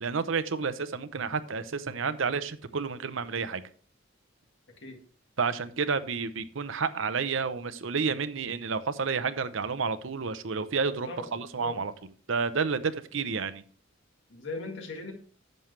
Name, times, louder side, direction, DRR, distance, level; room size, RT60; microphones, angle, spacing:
voice 1, 0.0-3.6 5.4-11.9 12.3-13.6, right 5 dB, 70° right, 12 dB, 0.8 m, -30 dB
voice 2, 10.9-11.8 14.3-15.1, left 3 dB, 65° left, 4 dB, 1.9 m, -39 dB
11.0 x 7.5 x 3.2 m, 0.43 s
head